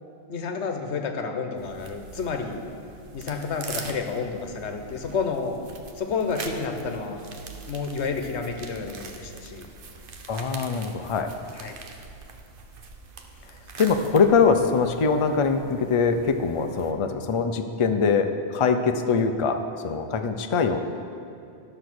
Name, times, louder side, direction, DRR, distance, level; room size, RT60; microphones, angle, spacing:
voice 1, 0.3-2.6 3.1-5.6 6.0-7.2 7.7-9.7 11.5-11.8, left 5 dB, 80° left, 5 dB, 1.2 m, -30 dB
sound 1, 1.6-16.9, right 4 dB, 55° right, 0.9 m, -43 dB
voice 2, 10.3-11.3 13.8-20.8, left 5 dB, 40° left, 6 dB, 0.5 m, -23 dB
11.5 x 6.5 x 6.1 m, 2.6 s
omnidirectional pair, 1.1 m